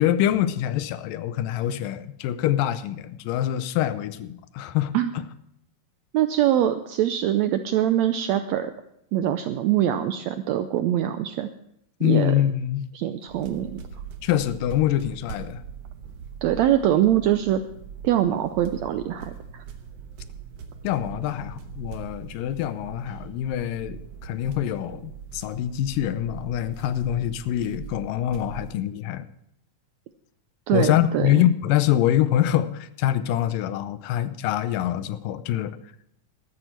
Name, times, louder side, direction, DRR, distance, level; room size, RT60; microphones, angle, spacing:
voice 1, 0.0-5.2 12.0-12.9 14.2-15.6 20.8-29.3 30.7-35.8, left 12 dB, 90° left, 13 dB, 2.4 m, -25 dB
voice 2, 6.1-8.7 9.1-11.5 12.0-12.3 12.9-13.8 16.4-17.6 18.0-19.6 30.7-31.4, right 11 dB, 80° right, 9 dB, 1.6 m, -23 dB
sound 1, 13.3-28.7, right 7 dB, 60° right, 1.9 m, -41 dB
14.0 x 13.0 x 4.5 m, 0.74 s
omnidirectional pair, 3.8 m